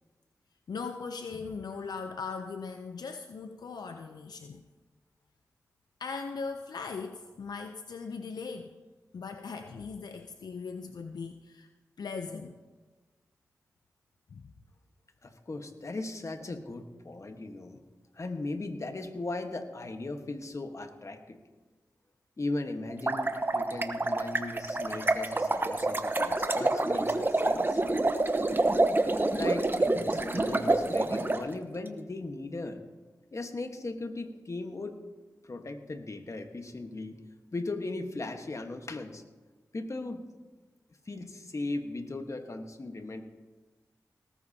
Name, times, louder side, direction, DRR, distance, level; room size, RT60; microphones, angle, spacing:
voice 1, 0.7-4.6 6.0-8.8 9.1-11.7 12.0-12.6 14.3-14.5, left 5 dB, 80° left, 6 dB, 0.6 m, -39 dB
voice 2, 15.2-17.8 18.1-21.4 22.4-27.8 29.4-32.8 33.3-35.0 35.4-37.2 37.5-39.2 39.7-40.4 41.1-43.2, left 2 dB, 50° left, 6 dB, 1.3 m, -38 dB
sound 1, 22.9-31.4, right 2 dB, 30° right, 1.0 m, -27 dB
18.5 x 14.0 x 2.8 m, 1.3 s
cardioid pair, 40°, 7 cm